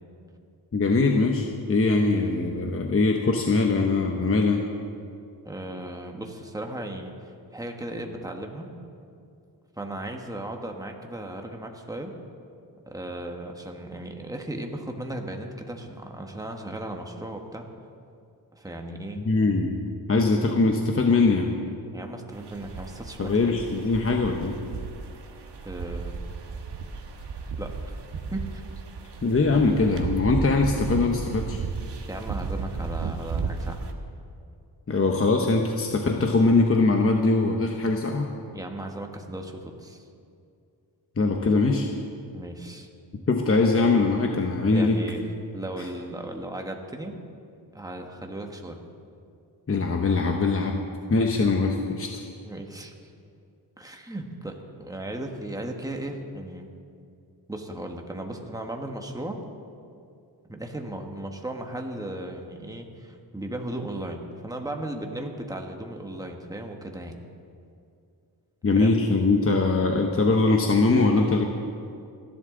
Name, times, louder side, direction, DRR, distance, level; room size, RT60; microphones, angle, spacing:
voice 1, 0.7-4.6 19.2-19.8 20.1-21.6 23.2-24.6 29.2-31.6 34.9-38.3 41.2-41.9 43.3-45.0 45.8-45.9 49.7-52.1 68.6-71.4, left 3 dB, 30° left, 2 dB, 1.0 m, -22 dB
voice 2, 5.4-8.7 9.8-12.1 12.9-17.6 18.5-19.2 21.9-23.5 25.6-26.2 27.6-27.7 28.3-28.6 32.1-33.9 38.5-40.1 42.3-42.9 44.7-45.2 45.5-47.2 47.7-48.8 52.4-53.1 53.8-56.7 57.5-59.4 60.5-67.2 68.7-68.9, right 1 dB, 10° right, 3 dB, 1.4 m, -36 dB
sound 1, 22.3-33.9, right 4 dB, 70° right, 1.4 m, -34 dB
29.5 x 11.0 x 3.9 m, 2.4 s
wide cardioid pair, 120°, 43 cm